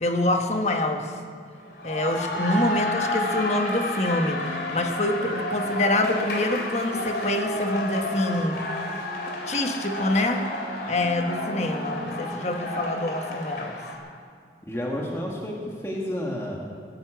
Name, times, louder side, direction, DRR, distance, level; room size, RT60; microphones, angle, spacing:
voice 1, 0.0-1.1 1.8-8.6 9.5-10.5 10.9-13.8, left 1 dB, 40° left, 4 dB, 1.1 m, -26 dB
sound 1, 1.6-14.0, left 1 dB, 70° left, 2.7 m, -31 dB
sound 2, 2.9-13.3, left 1 dB, 25° right, 3.4 m, -42 dB
voice 2, 14.7-16.6, left 1 dB, 15° left, -2 dB, 1.7 m, -30 dB
17.0 x 9.5 x 7.8 m, 2.1 s
head